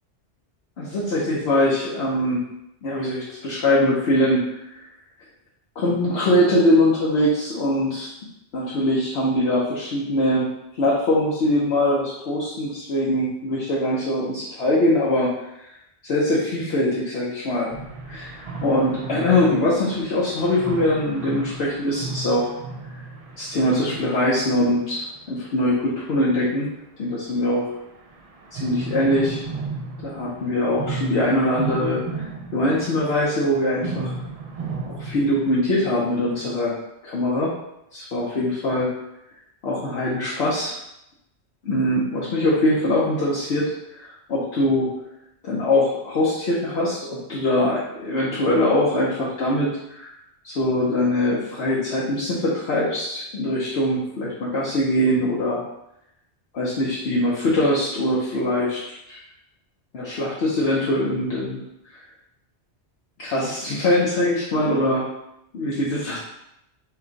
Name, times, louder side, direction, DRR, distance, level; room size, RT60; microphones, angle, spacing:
voice 1, 0.8-2.5 2.8-4.5 5.8-8.1 8.5-10.5 10.8-15.3 16.0-17.7 18.1-22.5 23.4-26.7 27.0-27.7 28.5-29.4 30.0-32.2 32.5-34.1 34.9-36.7 37.0-37.5 37.9-38.9 39.6-40.8 41.6-44.9 45.4-50.1 50.4-55.6 56.5-59.2 59.9-61.6 61.9-62.0 63.2-65.1 65.5-66.2, left 1 dB, 70° left, -7 dB, 1.0 m, -22 dB
sound 1, 17.7-25.9 27.7-36.5, right 4 dB, 50° right, 0.4 m, -34 dB
4.4 x 2.3 x 3.8 m, 0.83 s
omnidirectional pair, 1.2 m